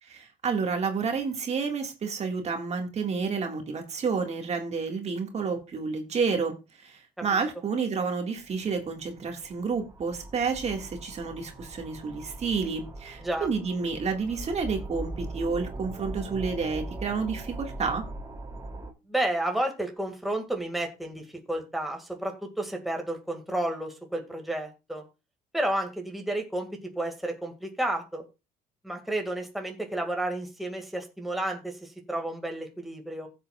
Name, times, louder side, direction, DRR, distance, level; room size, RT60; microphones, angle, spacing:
voice 1, 0.0-18.1, right 5 dB, 40° right, 3 dB, 2.0 m, -30 dB
sound 1, 8.4-18.9, right 2 dB, 20° right, 2.9 m, -40 dB
voice 2, 19.1-25.0 25.5-28.2 28.8-33.3, right 1 dB, ahead, 2 dB, 2.1 m, -31 dB
15.5 x 7.7 x 2.4 m, 0.27 s
cardioid pair, 110°, 17 cm